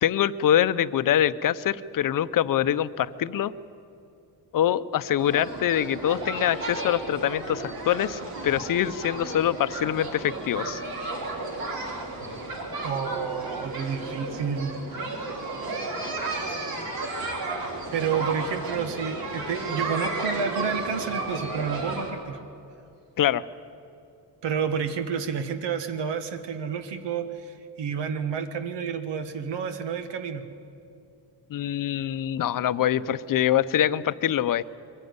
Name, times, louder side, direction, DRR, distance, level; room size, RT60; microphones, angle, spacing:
voice 1, 0.0-3.5 4.5-10.8 16.0-16.1 23.2-23.4 31.5-34.6, left 11 dB, 55° left, 14 dB, 0.7 m, -24 dB
sound 1, 5.2-22.1, right 2 dB, 60° right, 4.2 m, -33 dB
voice 2, 12.8-14.8 17.9-22.4 24.4-30.4, right 6 dB, 90° right, 8 dB, 1.6 m, -30 dB
22.5 x 15.5 x 9.5 m, 2.6 s
cardioid pair, 155°, 41 cm